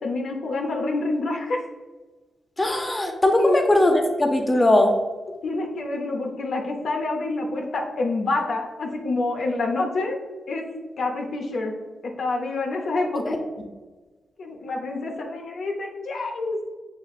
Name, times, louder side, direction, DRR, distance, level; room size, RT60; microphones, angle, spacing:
voice 1, 0.0-1.6 3.4-3.6 5.4-10.2 10.5-10.6 11.0-11.7 12.0-13.4 14.4-16.7, left 2 dB, 75° left, 1 dB, 0.7 m, -27 dB
voice 2, 2.6-4.9, left 1 dB, 25° left, 4 dB, 0.7 m, -19 dB
6.1 x 3.1 x 2.4 m, 1.3 s
cardioid pair, 65°, 0 cm